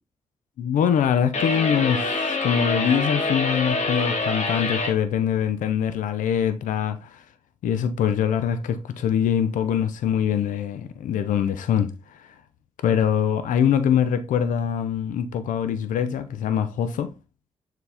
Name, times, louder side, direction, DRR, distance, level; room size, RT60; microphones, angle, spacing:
voice 1, 0.6-7.2 7.6-12.3 12.8-17.1, left 8 dB, 80° left, 0.7 m, -23 dB
sound 1, 1.3-5.0, left 3 dB, 60° left, 1.7 m, -25 dB
7.1 x 4.0 x 3.4 m
supercardioid pair, 40°, 13 cm